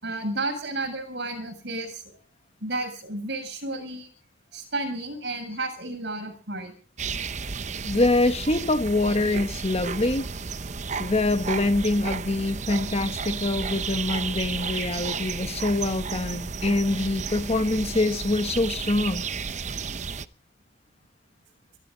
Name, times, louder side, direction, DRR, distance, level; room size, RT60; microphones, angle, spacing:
voice 1, 0.0-2.0 2.6-4.1 4.5-6.7, right 2 dB, 55° right, 7.3 m, -32 dB
sound 1, 7.0-20.2, right 5 dB, 35° right, 0.8 m, -33 dB
voice 2, 7.8-10.3 11.0-19.2, left 2 dB, 30° left, 1.2 m, -25 dB
24.0 x 13.5 x 4.0 m
head